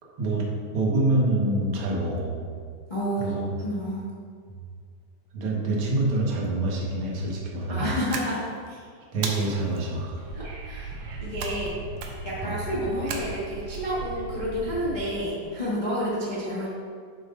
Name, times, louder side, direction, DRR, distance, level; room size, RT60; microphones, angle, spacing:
voice 1, 0.7-2.3 3.2-3.4 5.3-8.0 9.1-10.2 12.4-12.6, right 2 dB, 55° right, -3 dB, 1.9 m, -26 dB
voice 2, 2.9-3.3 3.6-4.1 7.7-8.8 10.3-10.9 11.2-11.7 12.2-16.7, equal, 75° left, -8 dB, 0.4 m, -30 dB
sound 1, 8.1-8.7 9.2-9.8 11.4-11.7 12.0-12.4 13.1-13.8, right 5 dB, 70° right, 1.8 m, -35 dB
Wind / Subway metro underground, 10.2-15.2, right 3 dB, 90° right, 2.7 m, -38 dB
11.5 x 7.3 x 2.5 m, 2.1 s
omnidirectional pair, 3.7 m